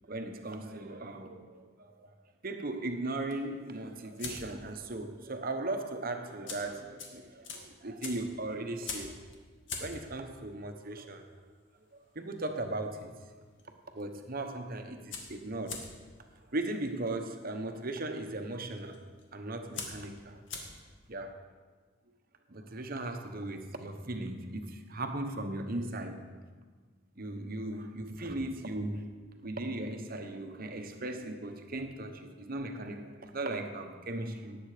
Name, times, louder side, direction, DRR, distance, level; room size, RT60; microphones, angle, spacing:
voice 1, 0.1-2.1 2.4-9.1 9.8-11.2 12.1-13.1 13.9-15.8 16.5-19.0 19.3-20.4 21.1-21.4 22.5-26.3 27.2-29.1 29.4-34.6, right 2 dB, 45° right, 6 dB, 1.1 m, -37 dB
sound 1, 3.2-4.8 5.1-5.4 5.6-5.7 6.3-13.2 13.5-14.0 14.3-14.4 14.6-21.1, left 4 dB, 60° left, 1.9 m, -44 dB
18.5 x 7.9 x 5.0 m, 1.4 s
head